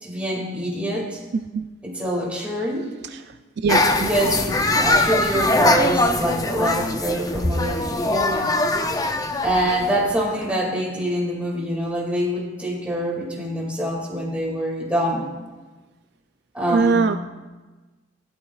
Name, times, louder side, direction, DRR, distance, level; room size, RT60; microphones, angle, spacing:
voice 1, 0.0-1.2 1.8-2.9 4.0-8.4 9.4-15.3 16.5-17.1, right 1 dB, 5° right, -3 dB, 2.2 m, -25 dB
voice 2, 1.3-1.6 3.6-4.1 16.7-17.2, right 4 dB, 55° right, 8 dB, 0.3 m, -21 dB
sound 1, 3.7-10.6, left 2 dB, 20° left, 0.5 m, -22 dB
16.5 x 11.5 x 2.4 m, 1.2 s
head